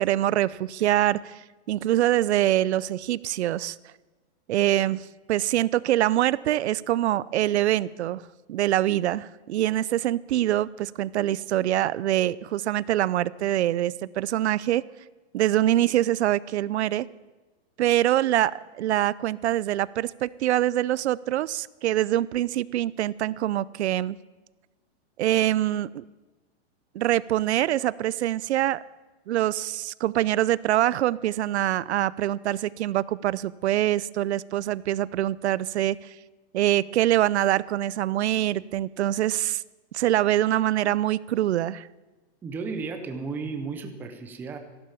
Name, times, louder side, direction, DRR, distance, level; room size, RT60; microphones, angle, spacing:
voice 1, 0.0-3.8 4.5-8.2 8.5-14.8 15.3-17.1 17.8-24.2 25.2-26.1 26.9-28.8 29.3-36.1 36.5-39.6 39.9-41.9, right 13 dB, 80° right, 21 dB, 0.6 m, -24 dB
voice 2, 42.4-44.6, right 4 dB, 5° right, 6 dB, 0.5 m, -34 dB
14.5 x 11.5 x 7.1 m, 1.2 s
supercardioid pair, 165°, 33 cm